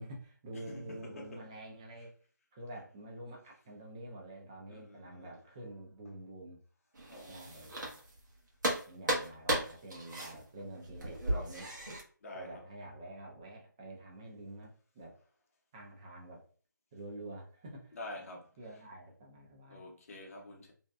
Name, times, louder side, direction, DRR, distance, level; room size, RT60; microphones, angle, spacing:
voice 1, 0.0-2.1 2.5-6.6 7.3-7.9 8.9-11.8 12.3-15.2 15.7-16.4 16.9-18.0 18.6-19.8, right 1 dB, 15° right, 0.4 m, -48 dB
voice 2, 0.5-1.5 2.0-2.1 4.7-5.4 7.1-7.7 12.2-12.7 17.9-18.8 19.7-20.7, left 1 dB, 45° left, 0.7 m, -48 dB
sound 1, 6.9-8.3 8.6-12.0, right 1 dB, 65° right, 0.9 m, -35 dB
2.6 x 2.1 x 2.2 m
figure-of-eight pair, 155°, 11 cm